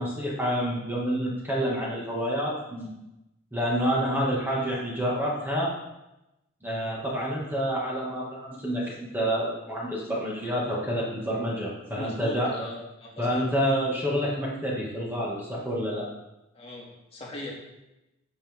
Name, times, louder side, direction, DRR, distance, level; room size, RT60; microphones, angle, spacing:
voice 1, 0.0-2.9 3.5-5.7 6.6-12.5 13.2-16.1, equal, 10° right, -4 dB, 2.2 m, -28 dB
voice 2, 11.9-13.5 16.5-17.5, left 1 dB, 30° left, -4 dB, 2.6 m, -39 dB
14.0 x 7.7 x 3.7 m, 0.95 s
head